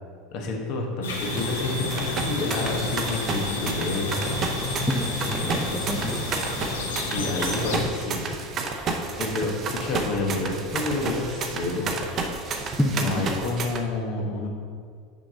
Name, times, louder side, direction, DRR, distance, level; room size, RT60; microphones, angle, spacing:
voice 1, 0.3-4.2 6.9-8.2 9.2-11.9 12.9-14.5, left 3 dB, 50° left, 0 dB, 1.2 m, -29 dB
sound 1, 1.0-7.8, left 2 dB, 70° left, 1.1 m, -30 dB
sound 2, 1.1-13.8, right 4 dB, 35° right, 0.7 m, -31 dB
voice 2, 4.9-6.5 12.8-13.4, left 1 dB, 5° left, 1 dB, 0.6 m, -28 dB
6.4 x 5.9 x 3.9 m, 2.1 s
figure-of-eight pair, 75°, 0 cm